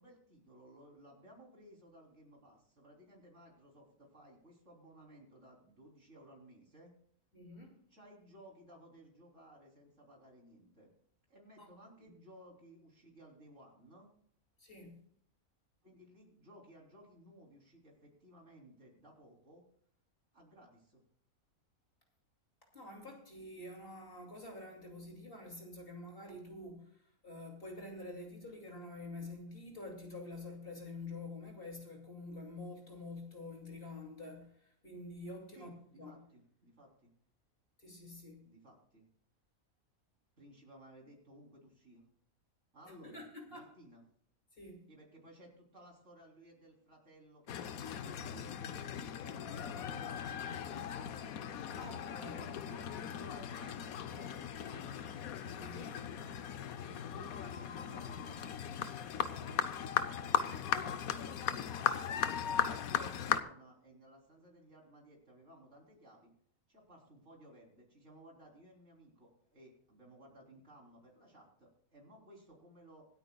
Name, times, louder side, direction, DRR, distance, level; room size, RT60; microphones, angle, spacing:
voice 1, 0.0-6.9 7.9-10.9 11.3-14.1 15.8-19.6 20.3-21.0 35.5-37.1 38.4-39.1 40.4-42.0 42.7-44.0 44.9-51.2 51.7-54.9 57.0-58.5 59.1-66.3 66.7-73.1, right 1 dB, 50° right, -1 dB, 3.8 m, -58 dB
voice 2, 7.3-7.8 11.6-11.7 14.6-15.0 22.7-36.2 37.8-38.5 42.9-43.7 44.5-44.9 51.7-52.3 55.5-56.0, left 2 dB, 40° left, 0 dB, 2.7 m, -48 dB
sound 1, 47.5-63.4, left 9 dB, 75° left, 1.2 m, -38 dB
25.5 x 9.0 x 2.3 m, 0.64 s
omnidirectional pair, 1.5 m